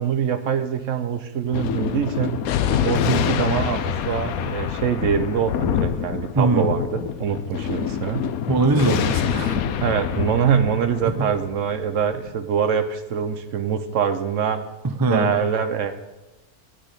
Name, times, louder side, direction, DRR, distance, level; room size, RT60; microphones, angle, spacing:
voice 1, 0.0-2.4 2.8-8.3 9.8-14.6 15.1-16.0, right 7 dB, 65° right, 9 dB, 1.0 m, -24 dB
Thunder, 1.5-12.4, left 9 dB, 80° left, 1.1 m, -26 dB
voice 2, 6.3-6.7 8.5-9.6 14.8-15.3, right 3 dB, 20° right, 7 dB, 0.6 m, -21 dB
9.7 x 6.0 x 8.3 m, 1.1 s
omnidirectional pair, 1.5 m